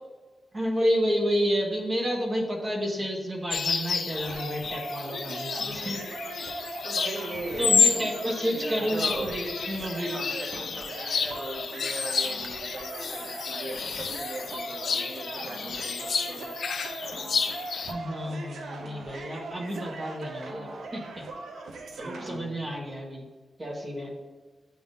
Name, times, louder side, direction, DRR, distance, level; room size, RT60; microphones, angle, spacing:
voice 1, 0.5-6.0 7.1-7.2 7.6-10.2 17.9-21.2 22.0-23.2 23.6-24.1, equal, 35° right, -1 dB, 1.2 m, -30 dB
sound 1, 3.5-17.9, left 5 dB, 70° left, 0.5 m, -30 dB
sound 2, 4.1-22.4, right 2 dB, 80° right, 0.7 m, -40 dB
voice 2, 6.8-9.3 10.1-16.5 22.0-22.6, right 1 dB, 50° right, -2 dB, 1.4 m, -39 dB
9.6 x 3.6 x 2.7 m, 1.3 s
cardioid pair, 80°, 0 cm